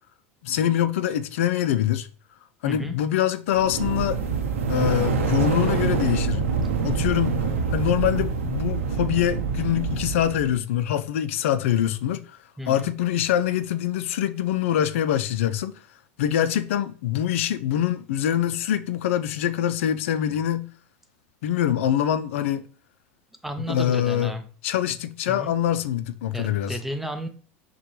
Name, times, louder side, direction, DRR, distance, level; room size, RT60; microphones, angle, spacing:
voice 1, 0.4-2.1 2.6-4.2 4.7-6.5 6.8-7.4 7.7-12.4 12.7-15.8 16.2-20.7 21.4-22.6 23.7-24.3 24.6-26.8, left 11 dB, 75° left, 0.4 m, -24 dB
voice 2, 2.6-3.0 12.6-12.9 23.4-24.4 25.3-25.5 26.3-27.3, equal, 5° right, 0.6 m, -33 dB
sound 1, 3.5-10.5, right 5 dB, 90° right, 0.7 m, -25 dB
5.8 x 2.2 x 3.0 m
hypercardioid pair, 95°, 7 cm